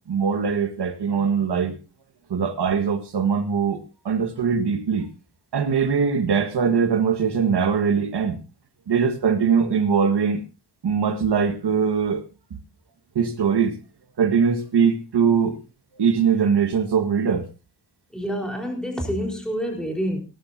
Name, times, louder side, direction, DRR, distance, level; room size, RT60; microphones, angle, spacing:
voice 1, 0.1-1.7 2.3-3.8 4.0-5.1 5.5-8.4 8.9-10.4 10.8-12.2 12.5-12.6 13.1-13.7 14.2-15.5 16.0-17.5, right 6 dB, 85° right, 9 dB, 1.7 m, -21 dB
voice 2, 18.1-20.2, equal, ahead, 1 dB, 4.2 m, -27 dB
18.0 x 13.5 x 2.7 m, 0.29 s
wide cardioid pair, 135°, 39 cm